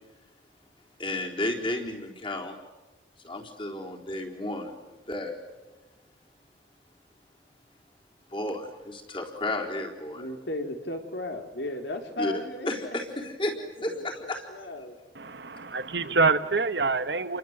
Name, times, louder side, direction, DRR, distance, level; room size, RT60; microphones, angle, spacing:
voice 1, 1.0-2.6 3.2-5.4 8.3-10.3 12.2-12.3 12.7-13.6 13.8-14.4, left 1 dB, 30° left, 4.1 m, -32 dB
voice 2, 10.1-12.7 13.2-15.0 16.1-16.2, left 2 dB, 70° left, 3.8 m, -36 dB
voice 3, 15.1-17.4, right 4 dB, 65° right, 1.4 m, -26 dB
29.5 x 23.5 x 8.2 m
head